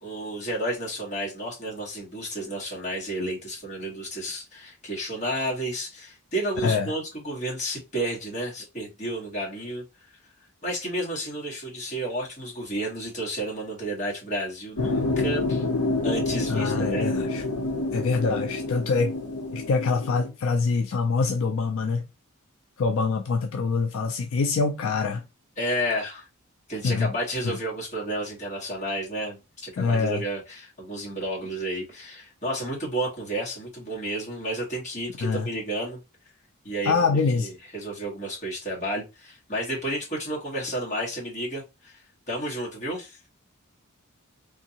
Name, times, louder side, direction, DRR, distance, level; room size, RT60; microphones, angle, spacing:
voice 1, 0.0-9.8 10.6-15.6 16.0-17.1 25.6-26.2 26.7-36.0 36.6-37.0 37.3-42.0 42.3-43.2, right 1 dB, 35° left, 1.7 m, -31 dB
voice 2, 6.6-6.9 16.5-17.4 17.9-19.1 19.5-22.1 22.8-25.2 26.8-27.1 27.4-27.6 29.8-30.2 35.2-35.5 36.8-37.5, left 4 dB, 65° left, 0.4 m, -25 dB
sound 1, 14.8-20.3, left 2 dB, 80° left, 0.7 m, -28 dB
3.6 x 2.6 x 2.8 m
head